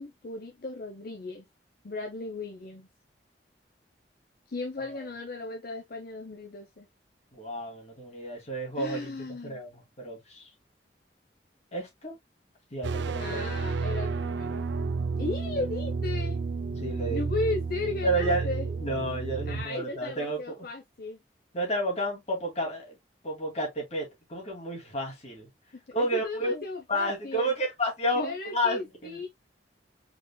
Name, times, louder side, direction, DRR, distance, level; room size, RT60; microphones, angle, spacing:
voice 1, 0.0-1.5 1.8-2.9 4.5-6.9 8.8-9.6 13.2-14.6 15.2-16.4 17.1-18.7 19.5-21.2 25.9-27.5 28.1-29.3, left 2 dB, 55° left, 0.7 m, -35 dB
voice 2, 7.3-9.2 9.4-10.5 11.7-12.1 12.7-13.5 16.8-17.2 18.0-20.7 21.5-22.9 23.2-25.5 25.9-29.2, right 1 dB, 40° left, 2.4 m, -31 dB
sound 1, 12.8-19.7, right 4 dB, 80° right, 0.4 m, -31 dB
4.8 x 3.9 x 2.2 m
head